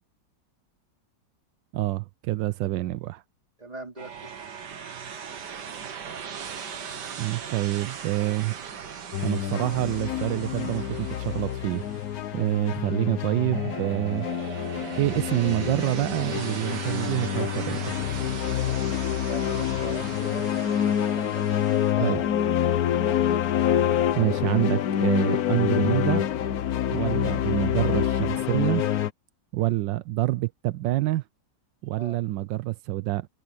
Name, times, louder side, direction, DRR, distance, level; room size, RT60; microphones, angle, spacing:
voice 1, 1.7-3.2 7.2-8.6 9.2-11.8 12.3-14.3 15.0-17.9 22.0-22.2 24.1-26.2 26.9-28.8 29.5-31.2 31.8-33.3, right 16 dB, 90° right, 1.3 m, -27 dB
voice 2, 3.6-4.4 19.3-22.3 27.2-27.4 29.6-29.8 32.0-32.2, right 2 dB, 20° right, 3.3 m, -41 dB
sound 1, 4.0-12.8 13.5-21.9, right 7 dB, 70° right, 2.0 m, -39 dB
sound 2, 9.1-29.1, left 10 dB, 60° left, 1.2 m, -27 dB
omnidirectional pair, 1.9 m